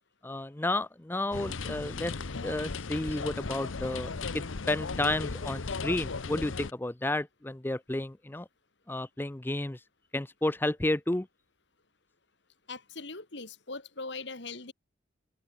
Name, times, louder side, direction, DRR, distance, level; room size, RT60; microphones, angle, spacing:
voice 1, 0.2-2.1 2.4-8.5 8.9-9.8 10.1-11.3, left 1 dB, 10° left, 0.5 m, -32 dB
sound 1, 1.3-6.7, left 4 dB, 85° left, 0.9 m, -36 dB
voice 2, 12.7-14.7, left 3 dB, 60° left, 2.7 m, -40 dB
head